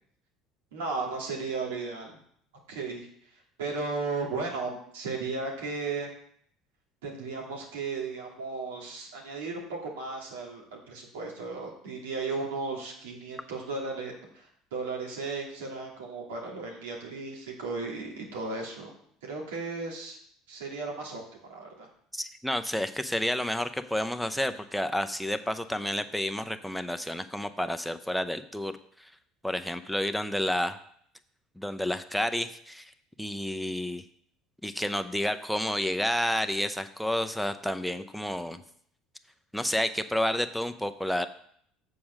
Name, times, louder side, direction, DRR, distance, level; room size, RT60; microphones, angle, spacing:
voice 1, 0.7-2.2 2.7-3.1 3.6-6.1 7.0-18.9 19.2-20.2 20.5-21.9, right 3 dB, 85° right, -1 dB, 2.4 m, -35 dB
voice 2, 22.1-29.1 29.4-30.8 31.6-32.9 33.2-34.0 34.6-38.6 39.5-41.3, left 1 dB, ahead, 8 dB, 0.7 m, -30 dB
7.1 x 4.8 x 6.3 m, 0.65 s
hypercardioid pair, 80°, 0 cm